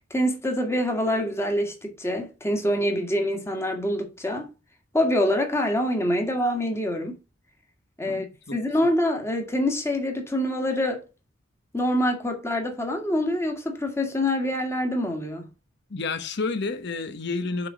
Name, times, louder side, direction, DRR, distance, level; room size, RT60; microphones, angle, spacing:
voice 1, 0.1-4.5 4.9-7.2 8.0-8.2 8.5-11.1 11.7-15.4, left 1 dB, 15° left, 1.7 m, -25 dB
voice 2, 8.0-8.6 15.9-17.7, left 3 dB, 60° left, 0.9 m, -30 dB
6.8 x 5.0 x 4.8 m
head